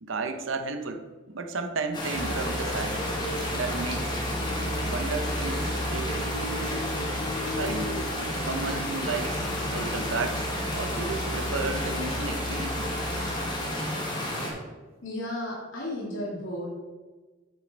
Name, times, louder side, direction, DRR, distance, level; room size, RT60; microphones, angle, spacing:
voice 1, 0.0-3.2 3.5-4.2 4.8-6.3 7.6-13.0, right 3 dB, 80° right, 7 dB, 0.8 m, -33 dB
sound 1, 1.9-14.5, left 1 dB, 25° left, 1.8 m, -31 dB
Musical instrument, 2.1-13.7, equal, 70° left, 2.4 m, -35 dB
voice 2, 15.0-16.7, left 1 dB, 85° left, -5 dB, 2.1 m, -33 dB
8.3 x 6.5 x 4.0 m, 1.3 s
head